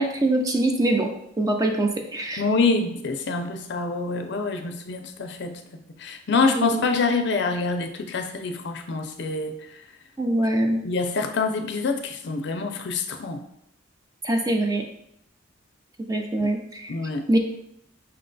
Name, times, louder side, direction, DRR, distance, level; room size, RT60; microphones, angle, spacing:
voice 1, 0.0-2.4 6.6-6.8 10.2-10.8 14.2-14.8 16.1-16.9 17.3-17.4, right 1 dB, 20° right, 3 dB, 0.4 m, -23 dB
voice 2, 2.4-5.6 6.0-9.8 10.8-13.4 16.4-16.5 16.9-17.2, left 4 dB, 60° left, 6 dB, 0.5 m, -26 dB
5.5 x 2.2 x 3.9 m, 0.75 s
head